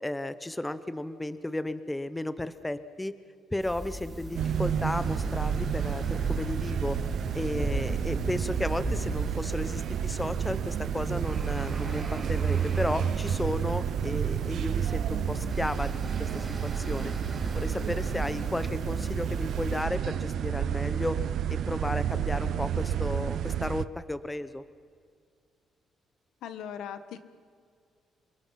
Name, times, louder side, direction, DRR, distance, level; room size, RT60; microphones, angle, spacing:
voice 1, 0.0-3.1 3.5-7.0 7.3-15.9 16.2-17.1 17.5-21.2 21.5-24.6, left 1 dB, 10° left, 13 dB, 0.8 m, -33 dB
sound 1, 3.6-19.8, equal, 20° right, 6.6 m, -38 dB
sound 2, 4.3-23.8, right 9 dB, 60° right, 0.6 m, -30 dB
voice 2, 26.4-27.2, left 8 dB, 90° left, 10 dB, 1.5 m, -39 dB
28.0 x 23.5 x 5.8 m, 2.2 s
cardioid pair, 145°, 0 cm